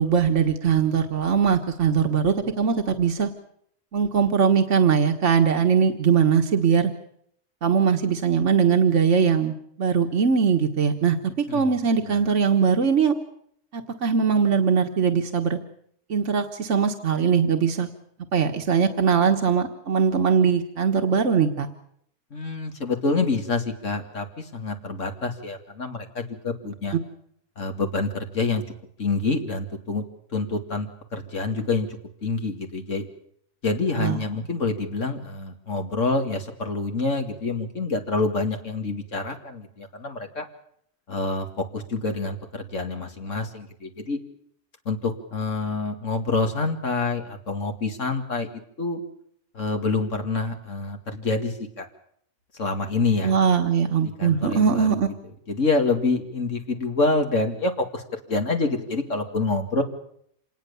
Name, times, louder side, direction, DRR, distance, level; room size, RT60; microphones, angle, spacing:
voice 1, 0.0-3.3 3.9-6.9 7.6-13.2 13.7-15.6 16.1-17.9 18.3-21.7 26.9-27.0 33.9-34.2 53.2-55.1, right 6 dB, 70° right, 4 dB, 1.8 m, -21 dB
voice 2, 22.3-27.0 27.6-28.6 29.0-30.0 30.3-31.9 32.2-33.1 33.6-40.5 41.1-44.2 44.9-48.5 48.8-49.0 49.5-51.9 52.6-53.3 54.2-55.0 55.5-58.0 58.3-59.8, left 3 dB, 80° left, 4 dB, 2.7 m, -27 dB
26.5 x 19.5 x 7.0 m, 0.68 s
omnidirectional pair, 1.3 m